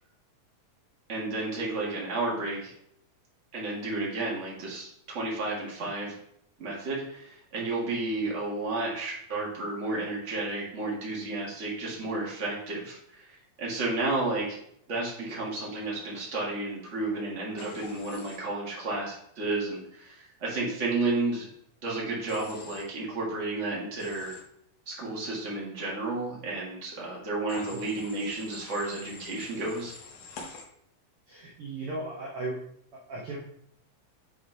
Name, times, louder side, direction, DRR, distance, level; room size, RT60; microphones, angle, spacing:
voice 1, 1.1-2.7 3.5-6.1 6.6-14.6 14.9-21.5 21.8-24.3 24.9-29.9, right 2 dB, 40° right, -4 dB, 1.0 m, -32 dB
Human voice / Train, 17.6-18.4 22.3-22.8 24.0-24.4 27.5-30.6, left 4 dB, 70° left, 1.7 m, -46 dB
voice 2, 31.3-32.6 32.9-33.4, right 2 dB, 80° right, -4 dB, 1.2 m, -36 dB
7.8 x 4.1 x 3.3 m, 0.71 s
omnidirectional pair, 4.0 m